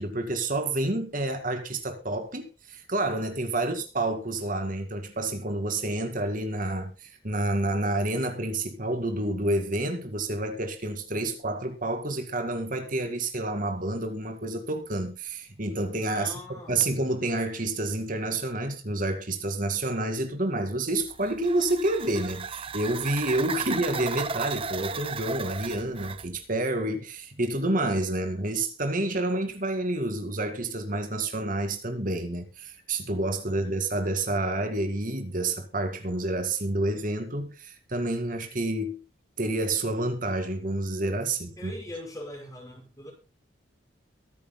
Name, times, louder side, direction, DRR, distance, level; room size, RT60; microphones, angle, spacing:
voice 1, 0.0-16.3 16.7-39.0 39.4-41.7, right 2 dB, 45° right, 2.1 m, -29 dB
voice 2, 16.1-16.9 23.4-23.7 33.5-33.8 41.6-43.1, left 1 dB, 20° left, 5.5 m, -42 dB
sound 1, 21.0-26.3, right 5 dB, 30° right, 0.7 m, -35 dB
23.0 x 10.5 x 2.2 m
head